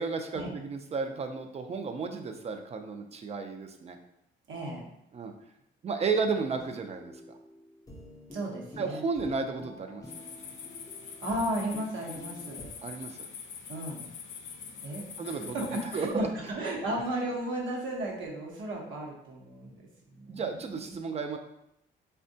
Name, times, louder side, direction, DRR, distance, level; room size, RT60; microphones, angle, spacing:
voice 1, 0.0-4.0 5.1-5.3 5.8-7.1 8.8-10.2 12.8-13.3 15.2-15.7 15.9-16.5 16.9-17.0 20.3-21.4, right 4 dB, 30° right, 5 dB, 0.4 m, -33 dB
voice 2, 4.5-4.9 8.3-9.1 11.2-12.6 13.7-14.0 14.8-19.8 20.1-21.0, right 1 dB, 80° right, -2 dB, 0.8 m, -34 dB
sound 1, 6.2-12.7, left 1 dB, 15° left, 0.5 m, -49 dB
sound 2, 10.1-16.1, left 6 dB, 75° left, 0.5 m, -44 dB
3.4 x 2.2 x 2.6 m, 0.78 s
cardioid pair, 90°, 20 cm